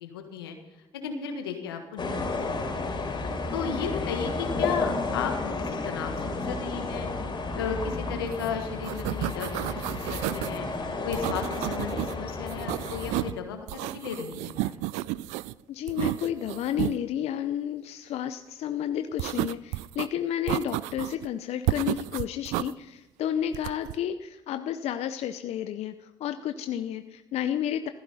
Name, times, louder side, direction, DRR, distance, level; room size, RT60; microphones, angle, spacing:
voice 1, 0.0-0.5 1.0-3.0 3.5-7.1 7.5-10.7 11.0-14.8, left 6 dB, 90° left, 5 dB, 1.6 m, -35 dB
sound 1, 2.0-13.3, left 3 dB, 40° left, 3.6 m, -32 dB
sound 2, 8.3-8.5 8.7-10.6 11.1-12.1 12.5-13.4 13.7-15.5 15.9-17.0 19.2-20.1 20.5-21.3 21.7-22.7 23.5-24.0, right 18 dB, 75° right, 0.4 m, -31 dB
voice 2, 15.7-27.9, left 10 dB, 65° left, 10 dB, 0.7 m, -31 dB
15.5 x 14.5 x 4.2 m, 1.0 s
hypercardioid pair, 50°, 12 cm